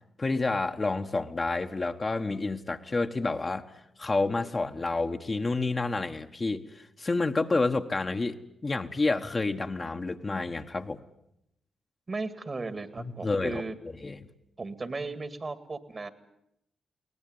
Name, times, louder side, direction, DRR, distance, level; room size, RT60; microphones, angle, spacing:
voice 1, 0.2-3.7 4.0-11.0 13.0-13.6 14.0-14.2, left 3 dB, 35° left, 5 dB, 1.4 m, -29 dB
voice 2, 12.1-13.7 14.6-16.1, right 3 dB, 40° right, 13 dB, 2.1 m, -36 dB
22.5 x 18.5 x 9.5 m, 0.80 s
hypercardioid pair, 40°, 0 cm